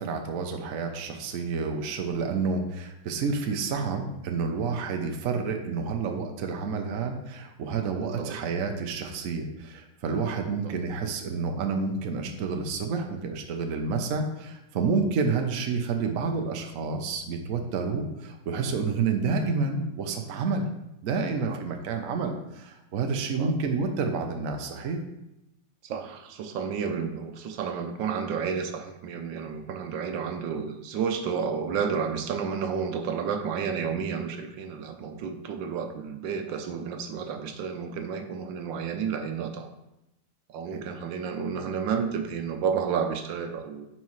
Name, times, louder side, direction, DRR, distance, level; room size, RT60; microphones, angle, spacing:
voice 1, 0.0-20.7 21.0-25.0 40.7-40.8, right 4 dB, 55° right, 4 dB, 1.0 m, -29 dB
voice 2, 25.8-39.7 40.5-43.9, right 6 dB, 80° right, 6 dB, 1.4 m, -31 dB
9.6 x 4.7 x 3.1 m, 0.89 s
omnidirectional pair, 2.0 m